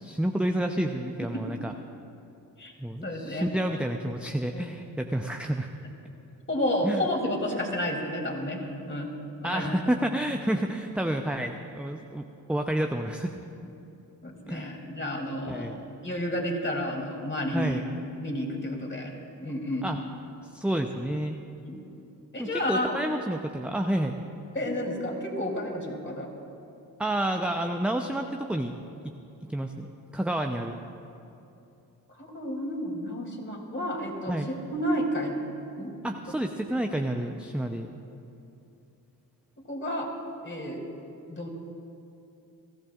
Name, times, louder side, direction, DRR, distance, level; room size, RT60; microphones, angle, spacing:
voice 1, 0.0-1.7 2.8-5.7 6.8-7.0 9.4-13.4 14.5-14.7 15.5-15.8 17.5-17.8 19.8-20.0 20.5-21.4 22.4-24.2 27.0-28.7 29.0-29.1 29.5-29.9 30.1-30.8 34.3-34.5 36.0-37.9, right 1 dB, 5° right, 4 dB, 0.7 m, -29 dB
voice 2, 3.0-3.5 4.5-4.7 6.5-9.1 9.4-9.8 14.2-17.8 18.2-19.1 19.4-19.8 21.6-21.8 22.3-23.0 24.5-26.3 32.2-35.4 35.8-35.9 36.4-36.5 39.7-40.1 40.4-40.8 41.3-41.5, left 1 dB, 25° left, 0 dB, 3.1 m, -31 dB
21.5 x 14.0 x 2.5 m, 2.8 s
hypercardioid pair, 40°, 44 cm